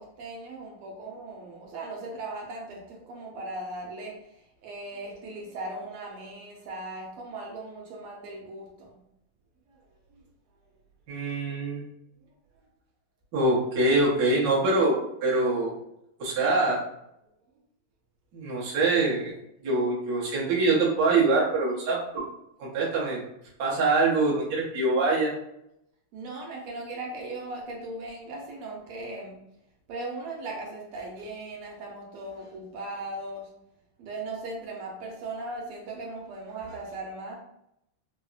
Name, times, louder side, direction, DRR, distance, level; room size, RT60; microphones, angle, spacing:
voice 1, 0.0-9.0 10.1-10.2 26.1-29.4 29.9-33.5 34.0-37.3, right 2 dB, 85° right, -1 dB, 1.7 m, -38 dB
voice 2, 11.1-11.9 13.3-15.7 16.2-16.8 18.3-19.3 19.6-22.2 22.6-23.2 23.6-25.3, right 3 dB, 55° right, -5 dB, 1.1 m, -24 dB
3.9 x 2.0 x 2.3 m, 0.79 s
omnidirectional pair, 2.4 m